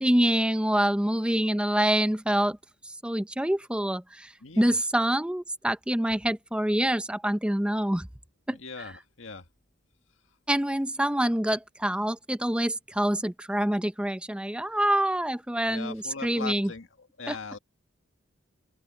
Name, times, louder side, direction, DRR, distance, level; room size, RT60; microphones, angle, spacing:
voice 1, 0.0-2.6 2.8-8.1 8.5-8.6 10.5-16.7 17.3-17.4, right 1 dB, 5° right, 0.6 m, -26 dB
voice 2, 4.4-4.8 8.5-9.5 15.7-17.6, left 4 dB, 75° left, 1.9 m, -40 dB
open air
head